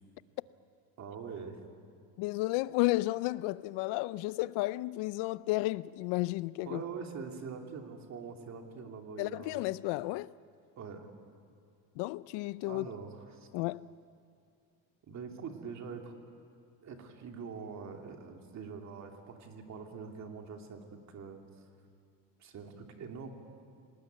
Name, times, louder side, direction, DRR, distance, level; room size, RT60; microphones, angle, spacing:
voice 1, 1.0-1.6 6.6-9.6 10.8-11.1 12.7-13.5 15.1-16.1 16.8-21.4 22.4-23.3, right 5 dB, 40° right, 2.8 m, -44 dB
voice 2, 2.2-6.8 9.2-10.3 12.0-12.9 13.5-13.9, left 19 dB, 65° left, 0.6 m, -32 dB
27.0 x 19.0 x 9.3 m
cardioid pair, 145°, 44 cm